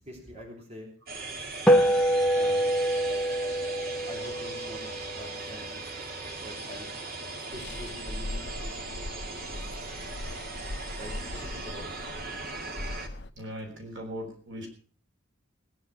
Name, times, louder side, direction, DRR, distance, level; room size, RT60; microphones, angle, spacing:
voice 1, 0.1-0.9 2.3-2.8 4.1-5.9 6.4-6.9 7.3-9.0 9.3-9.9 11.0-11.9, equal, 35° right, 1 dB, 3.7 m, -45 dB
sound 1, 1.1-13.1, right 3 dB, 50° right, 2.1 m, -39 dB
sound 2, 1.7-6.3, equal, 5° left, 1.0 m, -26 dB
sound 3, 7.5-13.3, left 1 dB, 60° left, 0.9 m, -39 dB
voice 2, 13.4-14.7, equal, 75° right, 2 dB, 5.1 m, -39 dB
18.0 x 10.0 x 6.1 m, 0.42 s
head